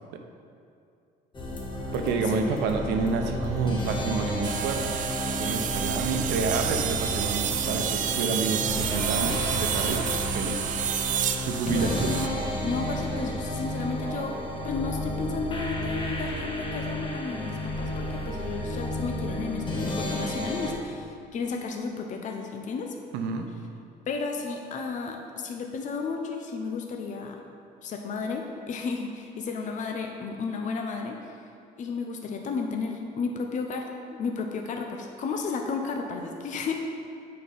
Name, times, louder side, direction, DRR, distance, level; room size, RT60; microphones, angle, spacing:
sound 1, 1.3-20.7, left 1 dB, 30° left, 1.2 m, -32 dB
voice 1, 1.9-5.0 5.3-10.1 10.3-10.6 11.4-12.2 23.1-23.5, right 5 dB, 90° right, 5 dB, 0.8 m, -29 dB
sound 2, 4.4-12.3, right 9 dB, 50° right, 0.5 m, -30 dB
voice 2, 11.7-12.4 12.6-14.3 14.6-22.9 24.1-27.4 27.8-31.4 31.8-36.7, left 4 dB, 45° left, 3 dB, 0.7 m, -33 dB
8.3 x 4.4 x 5.4 m, 2.4 s
cardioid pair, 110°, 17 cm